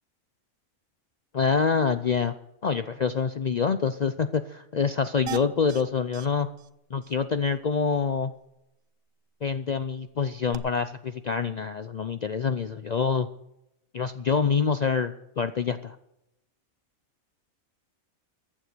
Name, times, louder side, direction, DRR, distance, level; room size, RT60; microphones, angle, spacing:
voice 1, 1.3-2.3 2.6-6.5 6.9-8.3 9.4-13.3 13.9-16.0, left 5 dB, 80° left, 11 dB, 0.3 m, -26 dB
sound 1, 5.3-5.8 6.1-6.3 6.6-6.7 7.0-7.1 10.5-10.6, right 10 dB, 75° right, 1.1 m, -37 dB
14.5 x 9.7 x 6.7 m, 0.83 s
omnidirectional pair, 1.5 m